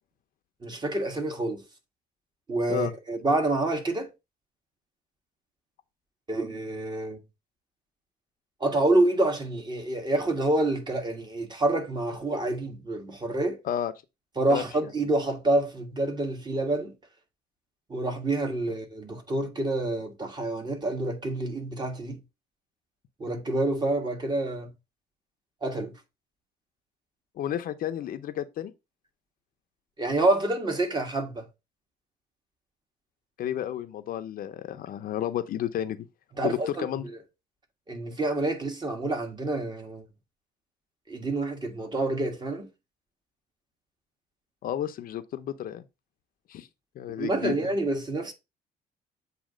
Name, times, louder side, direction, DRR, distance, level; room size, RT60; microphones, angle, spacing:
voice 1, 0.6-1.6 2.5-4.1 6.3-7.2 8.6-13.6 14.4-16.9 17.9-22.2 23.2-24.7 25.6-25.9 30.0-31.5 36.3-36.9 37.9-40.0 41.1-42.7 47.2-48.3, right 2 dB, 25° right, 1.6 m, -27 dB
voice 2, 27.4-28.7 33.4-36.1 36.4-37.1 44.6-45.8 46.5-46.7 47.0-47.5, left 10 dB, 55° left, 0.6 m, -31 dB
7.4 x 2.8 x 5.0 m
cardioid pair, 110°, 17 cm